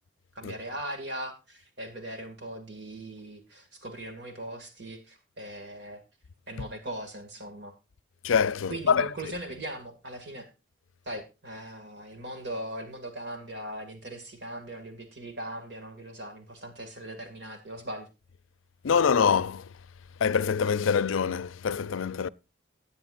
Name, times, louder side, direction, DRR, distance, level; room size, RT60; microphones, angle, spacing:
voice 1, 0.3-6.0 6.5-7.7 8.7-10.5 11.1-18.1, right 1 dB, 60° right, 2.2 m, -39 dB
voice 2, 8.2-9.1 18.8-19.7 20.2-22.3, left 6 dB, 85° left, 0.5 m, -25 dB
17.0 x 9.6 x 2.5 m
head